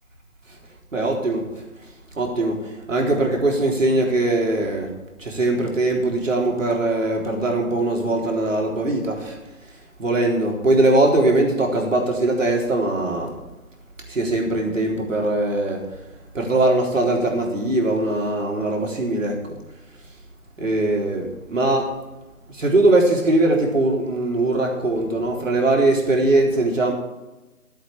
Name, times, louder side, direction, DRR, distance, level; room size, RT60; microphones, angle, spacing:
voice 1, 0.9-1.4 2.2-4.9 5.2-9.4 10.0-13.3 14.1-15.8 16.3-19.4 20.6-22.0 22.5-26.9, right 2 dB, 60° right, 0 dB, 3.9 m, -21 dB
14.0 x 7.8 x 7.2 m, 1.1 s
figure-of-eight pair, 165°, 44 cm